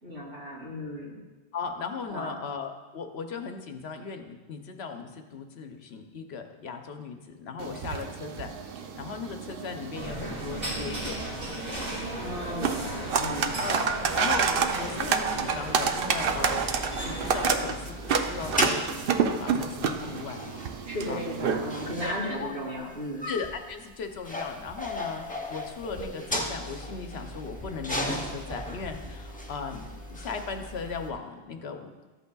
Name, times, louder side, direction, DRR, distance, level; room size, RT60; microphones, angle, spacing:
voice 1, 0.0-1.2 2.1-2.4 12.2-13.5 20.9-23.3, equal, 85° right, -5 dB, 3.1 m, -35 dB
voice 2, 1.5-8.5 8.9-11.2 13.6-13.9 14.1-16.6 17.0-20.6 21.1-21.2 22.0-22.5 23.2-31.9, left 5 dB, 70° left, 5 dB, 1.0 m, -37 dB
sound 1, 7.6-22.1, right 6 dB, 60° right, 0.8 m, -30 dB
sound 2, 9.9-17.5, right 1 dB, 40° right, 1.4 m, -36 dB
sound 3, 16.2-31.1, left 1 dB, 10° left, 0.7 m, -36 dB
13.0 x 8.1 x 2.3 m, 1.3 s
omnidirectional pair, 1.1 m